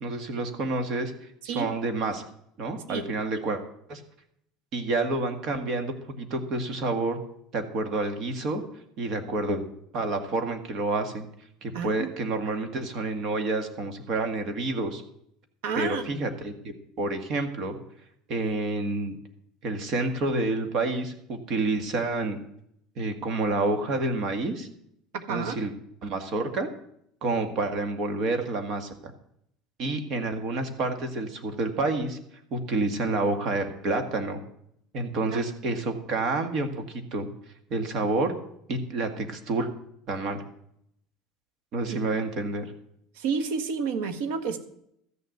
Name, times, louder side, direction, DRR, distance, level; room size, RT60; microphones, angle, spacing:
voice 1, 0.0-1.1 1.4-2.2 2.6-3.6 3.9-4.0 4.7-7.2 7.5-8.6 9.0-9.6 9.9-11.3 11.6-15.0 15.8-16.5 17.0-17.8 18.3-19.2 19.6-22.4 23.0-24.7 25.3-25.7 26.0-26.7 27.2-29.1 29.8-32.2 32.5-34.4 34.9-37.3 37.7-38.3 38.7-39.7 40.1-40.4 41.7-42.7, right 2 dB, 45° right, 7 dB, 1.9 m, -28 dB
voice 2, 11.7-12.1 15.6-16.2 25.3-25.6 35.3-35.4 41.9-42.0 43.2-44.6, right 5 dB, 85° right, 9 dB, 1.5 m, -30 dB
13.5 x 6.8 x 8.1 m, 0.72 s
cardioid pair, 150°, 0 cm